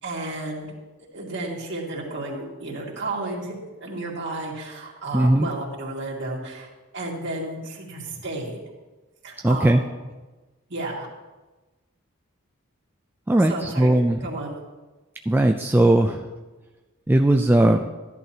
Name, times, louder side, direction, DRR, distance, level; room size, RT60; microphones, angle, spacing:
voice 1, 0.0-0.7 1.1-3.6 3.8-6.7 6.9-8.6 9.2-9.9 10.7-11.1 13.5-13.9 14.2-14.6, right 2 dB, 55° right, -2 dB, 2.1 m, -32 dB
voice 2, 5.1-5.5 9.4-9.8 13.3-14.2 15.3-16.2 17.1-17.9, right 1 dB, 10° right, 3 dB, 0.3 m, -18 dB
14.0 x 11.0 x 2.9 m, 1.2 s
head